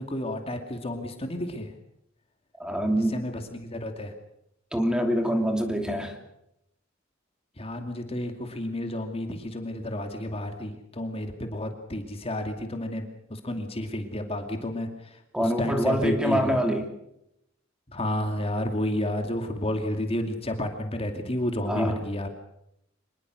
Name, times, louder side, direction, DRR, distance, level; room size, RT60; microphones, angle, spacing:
voice 1, 0.0-1.7 2.9-4.1 7.6-16.5 17.9-22.3, left 1 dB, 30° left, 5 dB, 2.6 m, -31 dB
voice 2, 2.6-3.1 4.7-6.2 15.3-16.9 21.7-22.0, equal, 5° right, 4 dB, 3.0 m, -25 dB
25.5 x 21.5 x 6.5 m, 0.79 s
head